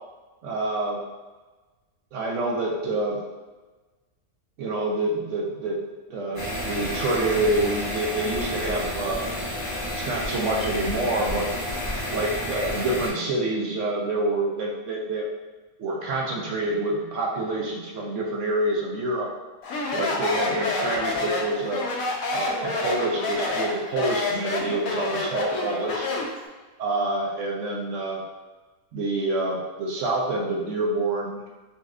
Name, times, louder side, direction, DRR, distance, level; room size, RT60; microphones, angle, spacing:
voice 1, 0.4-1.0 2.1-3.2 4.6-5.8 6.1-9.2 9.9-11.5 12.1-15.3 15.8-19.3 19.9-21.8 22.3-26.1 26.8-28.2 28.9-31.5, right 2 dB, 65° right, -1 dB, 0.8 m, -27 dB
sound 1, 6.4-13.1, left 1 dB, 40° left, 0.9 m, -30 dB
Speech, 19.6-26.4, left 2 dB, 75° left, 1.0 m, -28 dB
4.0 x 2.4 x 2.4 m, 1.3 s
omnidirectional pair, 1.5 m